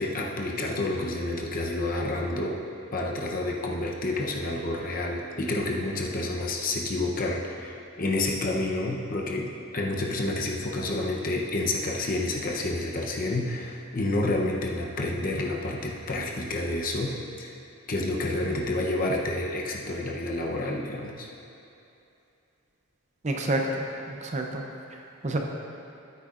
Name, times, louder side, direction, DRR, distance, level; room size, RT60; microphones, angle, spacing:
voice 1, 0.0-2.6 2.9-17.5 17.9-21.3, left 2 dB, 40° left, -1 dB, 0.8 m, -29 dB
voice 2, 23.2-24.6 24.9-25.4, right 1 dB, 30° right, 2 dB, 0.6 m, -29 dB
13.5 x 8.4 x 2.5 m, 2.8 s
head